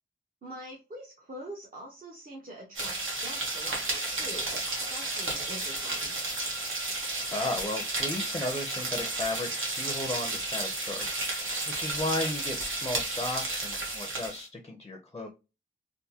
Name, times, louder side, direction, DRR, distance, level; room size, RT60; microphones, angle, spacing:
voice 1, 0.4-3.0 3.2-6.1, right 1 dB, 45° right, -2 dB, 0.8 m, -44 dB
sound 1, 2.7-14.4, right 2 dB, 75° right, 1.2 m, -32 dB
voice 2, 7.3-15.3, left 2 dB, 20° left, 2 dB, 0.5 m, -35 dB
3.5 x 2.5 x 2.7 m, 0.29 s
wide cardioid pair, 140°, 21 cm